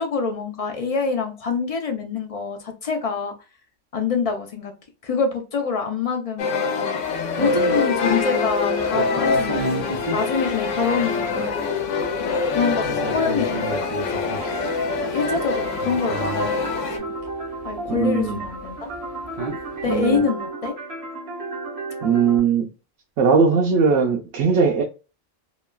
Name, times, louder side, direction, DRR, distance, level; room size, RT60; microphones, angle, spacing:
voice 1, 0.0-3.3 3.9-4.7 5.0-7.0 7.4-11.5 12.2-14.3 15.0-17.1 17.6-18.9 19.8-20.7, left 5 dB, 45° left, 0.5 m, -26 dB
sound 1, 6.4-17.0, left 4 dB, 80° left, 1.0 m, -25 dB
sound 2, 7.0-20.2, right 2 dB, 35° right, 0.7 m, -34 dB
voice 2, 7.4-7.7 18.0-18.4 19.9-20.2 22.0-22.7 23.2-24.8, right 5 dB, 85° right, 1.0 m, -19 dB
sound 3, 14.4-22.4, right 3 dB, 60° right, 1.2 m, -33 dB
3.0 x 2.2 x 2.2 m
omnidirectional pair, 1.2 m